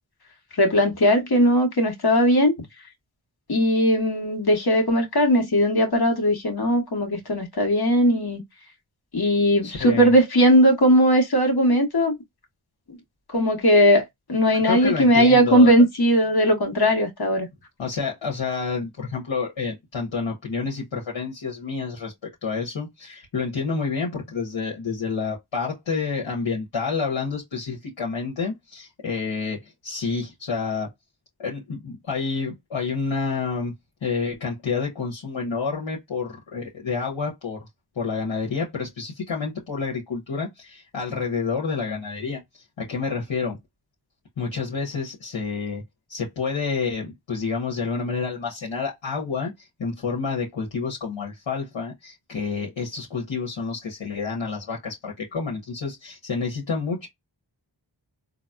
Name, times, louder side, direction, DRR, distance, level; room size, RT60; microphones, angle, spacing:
voice 1, 0.6-2.5 3.5-8.4 9.1-12.1 13.3-17.5, equal, 55° left, 1.3 m, -19 dB
voice 2, 9.6-10.1 14.5-15.7 17.8-22.1 22.4-30.9 31.4-33.7 34.0-37.7 38.0-42.4 42.8-43.6 44.4-45.8 46.1-57.1, left 5 dB, 85° left, 1.3 m, -29 dB
3.9 x 2.2 x 2.3 m
cardioid pair, 40°, 45 cm